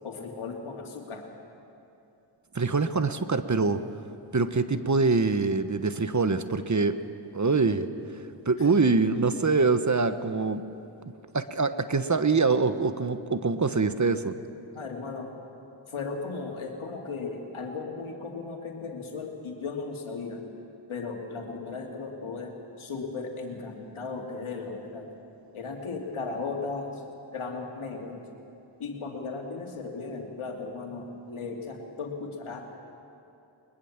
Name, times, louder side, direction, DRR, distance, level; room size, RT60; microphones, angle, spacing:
voice 1, 0.0-1.3 8.6-8.7 14.7-15.3 15.9-20.4 20.9-25.1 25.5-27.0 27.3-28.2 28.8-32.6, left 4 dB, 85° left, 1 dB, 2.7 m, -36 dB
voice 2, 2.5-3.8 4.3-7.0 7.3-7.9 8.1-10.6 11.3-14.4, right 4 dB, 35° right, 10 dB, 1.2 m, -24 dB
21.5 x 21.5 x 7.4 m, 2.7 s
cardioid pair, 40°, 48 cm